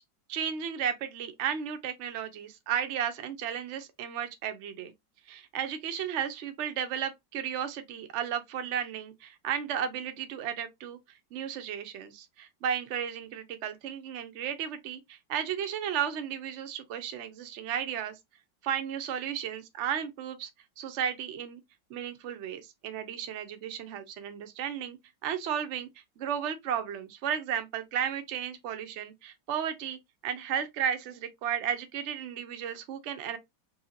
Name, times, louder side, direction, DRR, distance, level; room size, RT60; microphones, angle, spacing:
voice 1, 0.3-4.9 5.3-18.2 18.6-20.5 20.8-21.6 21.9-25.9 26.2-33.4, right 9 dB, 85° right, 0.6 m, -34 dB
4.3 x 2.7 x 2.7 m
omnidirectional pair, 2.1 m